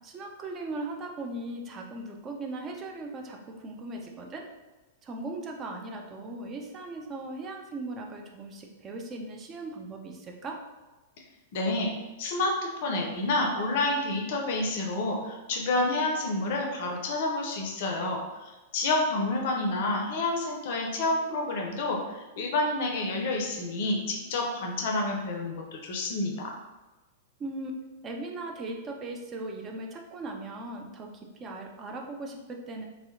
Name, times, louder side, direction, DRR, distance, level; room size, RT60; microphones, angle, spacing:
voice 1, 0.0-4.4 5.0-10.6 27.4-27.7 28.0-31.1 31.4-32.8, right 2 dB, 25° right, 2 dB, 0.4 m, -38 dB
voice 2, 11.5-11.9 12.2-12.5 12.8-18.2 18.7-26.5, left 2 dB, 55° left, 1 dB, 0.4 m, -29 dB
2.6 x 2.0 x 2.6 m, 1.1 s
figure-of-eight pair, 100°, 0 cm